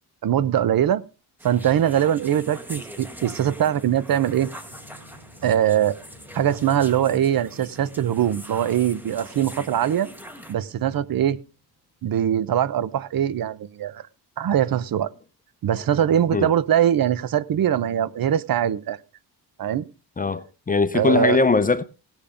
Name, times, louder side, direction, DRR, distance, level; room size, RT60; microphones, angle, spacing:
voice 1, 0.2-1.0 1.4-4.5 5.4-6.0 6.3-10.1 10.5-11.4 12.0-14.1 14.4-15.1 15.6-19.0 19.6-19.8 20.9-21.4, right 10 dB, 55° right, 0.8 m, -22 dB
sound 1, 1.4-10.5, equal, 5° right, 1.8 m, -43 dB
sound 2, 4.3-11.9, left 1 dB, 40° right, 5.3 m, -50 dB
voice 2, 20.2-21.8, left 4 dB, 20° left, 0.6 m, -20 dB
17.5 x 7.1 x 5.1 m
cardioid pair, 140°, 42 cm